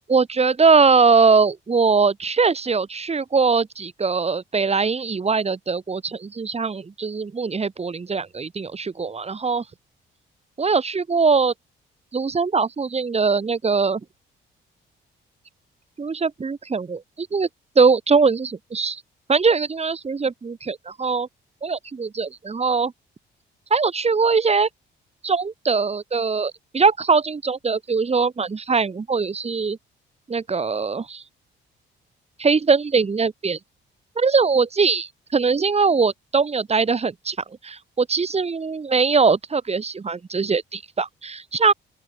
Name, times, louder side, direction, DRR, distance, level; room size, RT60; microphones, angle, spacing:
voice 1, 0.1-9.6 10.6-11.5 12.1-14.0 16.0-17.5 17.8-19.0 19.3-21.3 21.6-22.9 23.7-24.7 25.2-29.8 30.3-31.2 32.4-33.6 34.2-37.4 37.6-41.7, right 4 dB, 30° right, 4.1 m, -21 dB
open air
cardioid pair, 90°, 20 cm